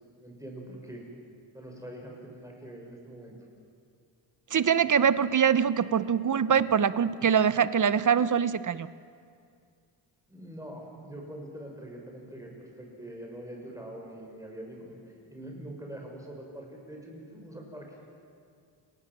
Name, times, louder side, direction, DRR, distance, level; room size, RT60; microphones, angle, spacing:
voice 1, 0.2-1.0 1.5-3.3 10.3-18.0, right 1 dB, 5° right, 0 dB, 5.9 m, -44 dB
voice 2, 4.5-8.9, right 7 dB, 40° right, 15 dB, 0.8 m, -23 dB
30.0 x 18.5 x 7.5 m, 2.3 s
cardioid pair, 90°, 50 cm